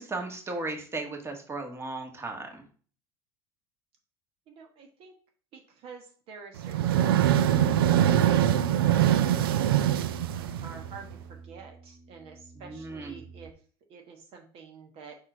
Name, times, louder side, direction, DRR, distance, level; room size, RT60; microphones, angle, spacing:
voice 1, 0.0-2.6 12.6-13.2, right 2 dB, 20° right, 4 dB, 1.5 m, -36 dB
voice 2, 4.5-5.1 5.5-8.3 8.6-9.3 10.6-13.5 13.9-15.2, right 5 dB, 55° right, 3 dB, 1.2 m, -48 dB
sound 1, 6.6-11.1, right 11 dB, 90° right, 0.4 m, -23 dB
Bass guitar, 7.2-13.5, right 1 dB, 5° left, 0.6 m, -42 dB
4.9 x 4.3 x 5.1 m, 0.42 s
supercardioid pair, 95°, 12 cm